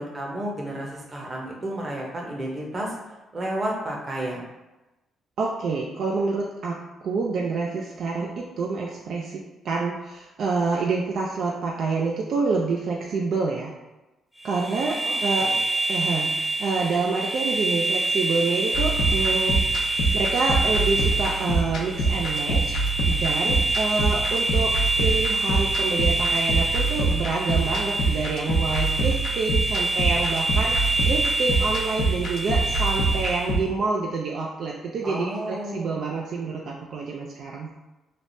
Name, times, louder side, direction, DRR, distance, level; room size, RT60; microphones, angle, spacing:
voice 1, 0.0-4.4 15.0-15.5 35.0-36.0, right 1 dB, 35° right, -2 dB, 0.8 m, -32 dB
voice 2, 5.4-13.7 14.4-15.5 15.9-16.3 16.6-19.6 20.1-22.8 23.1-37.7, right 4 dB, 65° right, -1 dB, 0.3 m, -27 dB
sound 1, 14.4-33.6, right 2 dB, 5° left, 0.4 m, -26 dB
sound 2, 18.7-33.6, right 2 dB, 70° left, 0.5 m, -26 dB
3.3 x 2.1 x 2.6 m, 1.0 s
cardioid pair, 90°, 0 cm